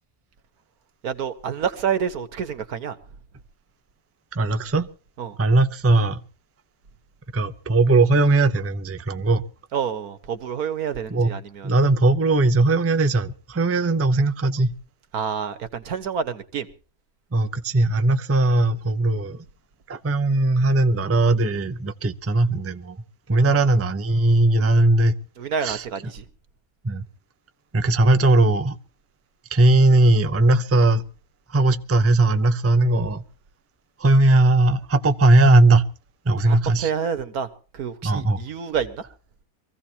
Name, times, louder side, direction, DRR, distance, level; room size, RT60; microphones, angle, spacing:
voice 1, 1.0-3.0 5.2-5.4 9.7-11.7 15.1-16.7 23.3-23.4 25.4-26.3 36.5-37.5 37.7-39.1, right 7 dB, 85° right, 1.8 m, -28 dB
voice 2, 4.3-4.9 5.4-6.2 7.3-9.4 11.1-11.3 11.6-14.7 17.3-19.4 19.9-23.0 23.3-25.1 25.6-25.8 26.8-27.0 27.7-28.8 29.5-31.0 31.5-33.2 34.0-35.8 36.3-36.9 38.0-38.4, right 2 dB, 15° right, 0.5 m, -19 dB
24.0 x 16.0 x 2.9 m
omnidirectional pair, 1.5 m